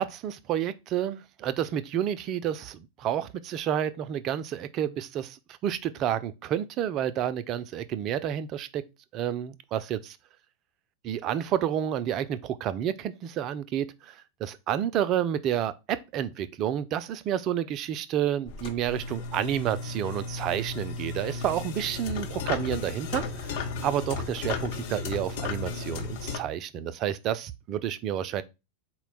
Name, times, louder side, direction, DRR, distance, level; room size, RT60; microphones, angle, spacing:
voice 1, 0.0-8.8 9.1-10.2 11.0-28.4, right 10 dB, 35° right, 0.3 m, -30 dB
sound 1, 18.5-26.4, left 4 dB, 50° left, 0.8 m, -34 dB
4.2 x 2.2 x 3.9 m
figure-of-eight pair, 90°, 0 cm